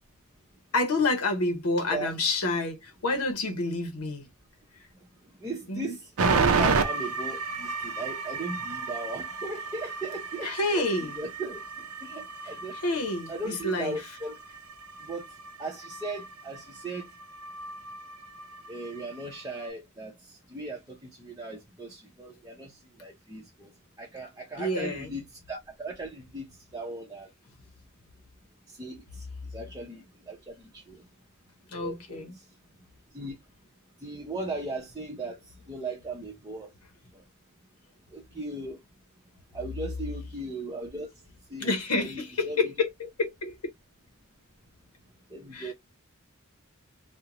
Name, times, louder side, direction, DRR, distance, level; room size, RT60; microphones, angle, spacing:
voice 1, 0.7-4.3 5.7-5.9 10.4-11.2 12.4-14.0 24.6-25.2 31.7-32.3 41.6-43.5 45.5-45.7, left 2 dB, 85° left, 0.7 m, -29 dB
voice 2, 5.4-6.0 6.3-10.9 11.2-11.6 12.0-12.8 13.3-14.3 15.0-15.2 15.6-17.1 18.7-20.1 20.5-22.7 23.0-23.7 24.0-27.3 28.8-29.0 29.5-31.0 31.7-32.2 33.1-33.3 34.0-35.4 35.7-36.7 38.1-38.8 39.5-41.1 41.5-41.7 42.0-42.6 45.3-45.7, right 2 dB, 15° right, 0.6 m, -37 dB
sound 1, 6.2-19.7, right 4 dB, 70° right, 0.5 m, -32 dB
2.5 x 2.1 x 2.8 m
head